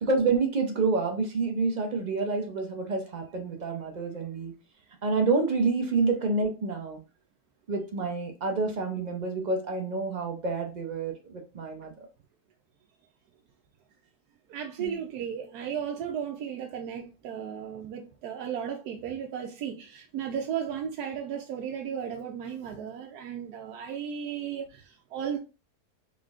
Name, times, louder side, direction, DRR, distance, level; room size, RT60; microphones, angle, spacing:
voice 1, 0.0-4.5 5.0-7.0 7.7-11.9 14.8-15.0, right 4 dB, 60° right, 0.4 m, -28 dB
voice 2, 14.5-25.4, right 8 dB, 80° right, 1.1 m, -35 dB
3.9 x 3.5 x 2.4 m
omnidirectional pair, 1.7 m